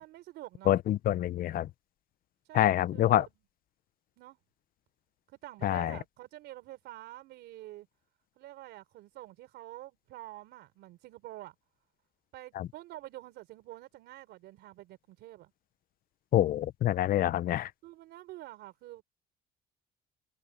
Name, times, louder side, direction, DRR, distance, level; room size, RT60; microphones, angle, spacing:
voice 1, 0.0-0.8 2.5-3.2 4.2-4.4 5.3-7.9 8.4-11.6 12.3-15.5 17.8-19.0, right 16 dB, 80° right, 4.4 m, -47 dB
voice 2, 0.7-1.7 2.5-3.3 5.6-6.0 12.6-12.7 16.3-17.7, left 13 dB, 60° left, 0.7 m, -26 dB
cardioid pair, 110°, 17 cm